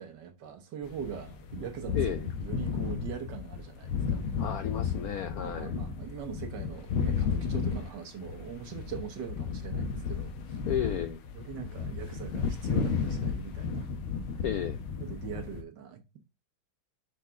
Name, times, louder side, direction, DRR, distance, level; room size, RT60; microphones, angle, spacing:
voice 1, 0.0-4.2 5.4-10.6 11.3-13.9 15.0-16.2, right 7 dB, 60° right, 1.6 m, -42 dB
sound 1, 0.8-15.6, left 6 dB, 90° left, 1.8 m, -33 dB
voice 2, 1.9-2.3 4.4-5.7 10.7-11.2 14.4-14.8, left 9 dB, 75° left, 0.8 m, -32 dB
6.2 x 4.1 x 5.6 m
omnidirectional pair, 2.2 m